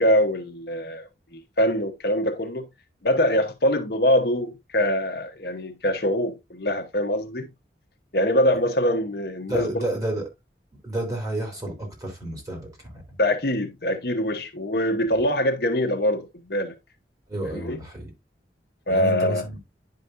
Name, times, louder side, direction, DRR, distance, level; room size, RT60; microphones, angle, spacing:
voice 1, 0.0-2.7 3.0-7.5 8.1-9.8 13.2-16.7 17.5-17.8 18.9-19.4, left 1 dB, 60° left, 1.0 m, -23 dB
voice 2, 9.5-10.3 10.8-13.2 17.3-18.1 18.9-19.6, right 2 dB, 20° right, 2.9 m, -30 dB
10.5 x 5.2 x 2.6 m
head